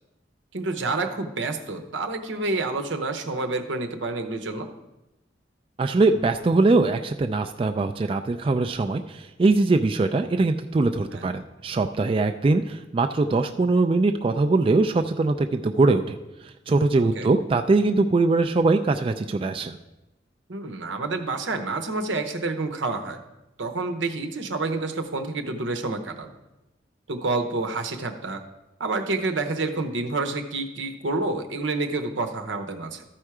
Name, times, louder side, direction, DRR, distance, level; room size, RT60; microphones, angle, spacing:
voice 1, 0.5-4.7 11.1-11.3 17.1-17.3 20.5-23.2 23.6-26.3 27.1-28.4 28.8-33.0, right 3 dB, 85° right, 6 dB, 0.9 m, -28 dB
voice 2, 5.8-16.2 16.7-19.8, right 3 dB, 30° right, 5 dB, 0.3 m, -22 dB
13.5 x 4.5 x 4.8 m, 0.99 s
head